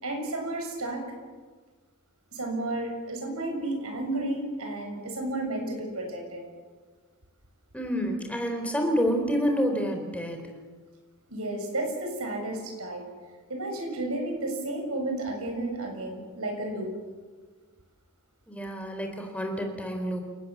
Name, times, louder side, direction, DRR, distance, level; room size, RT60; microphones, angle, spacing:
voice 1, 0.0-1.0 2.3-6.4 11.3-13.0 13.5-16.9, right 2 dB, 70° right, 3 dB, 7.2 m, -32 dB
voice 2, 7.7-10.5 18.5-20.2, equal, 5° left, 4 dB, 4.3 m, -28 dB
29.0 x 19.0 x 7.6 m, 1.4 s
head